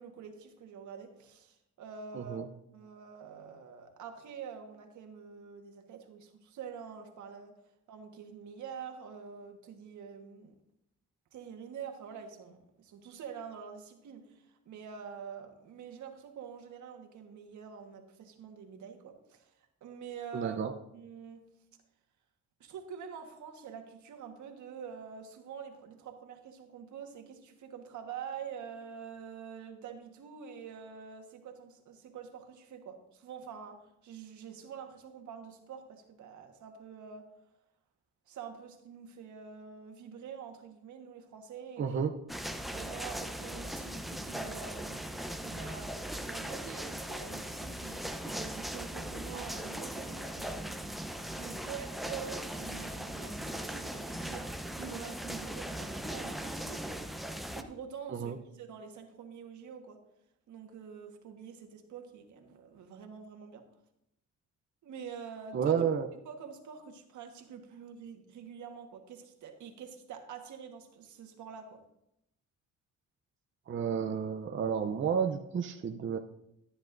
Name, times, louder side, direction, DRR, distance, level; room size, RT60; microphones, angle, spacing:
voice 1, 0.0-2.4 2.7-7.5 7.9-10.5 11.3-20.6 20.9-21.5 22.6-37.3 38.3-41.9 42.7-45.0 45.4-45.9 46.2-50.7 51.4-56.8 57.5-60.0 60.5-63.6 64.8-65.7 66.2-71.8, right 7 dB, 75° right, 4 dB, 1.6 m, -46 dB
voice 2, 2.1-2.5 20.3-20.7 41.8-42.1 58.1-58.4 65.5-66.1 73.7-76.2, right 7 dB, 40° right, 5 dB, 0.7 m, -31 dB
sound 1, 42.3-57.6, right 1 dB, ahead, 0.7 m, -39 dB
13.5 x 9.8 x 2.6 m, 0.82 s
cardioid pair, 90°, 30 cm